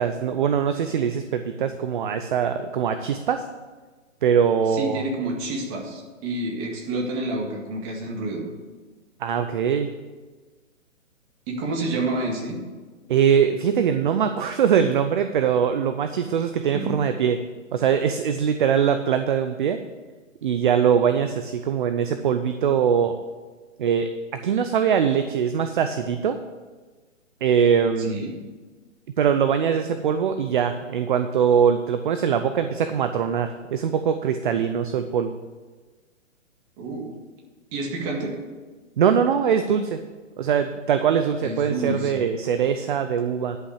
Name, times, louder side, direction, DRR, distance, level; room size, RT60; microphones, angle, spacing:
voice 1, 0.0-3.4 4.2-5.0 9.2-9.9 13.1-17.4 17.7-19.8 20.4-23.1 23.8-24.1 24.4-26.4 27.4-28.2 29.2-35.4 39.0-40.0 40.4-43.6, right 7 dB, 40° right, 8 dB, 0.6 m, -22 dB
voice 2, 4.7-8.5 11.5-12.6 16.7-17.0 28.1-28.3 36.8-37.1 37.7-38.4 41.4-42.2, right 2 dB, 25° right, 0 dB, 2.0 m, -29 dB
11.0 x 5.7 x 8.5 m, 1.3 s
hypercardioid pair, 150°, 39 cm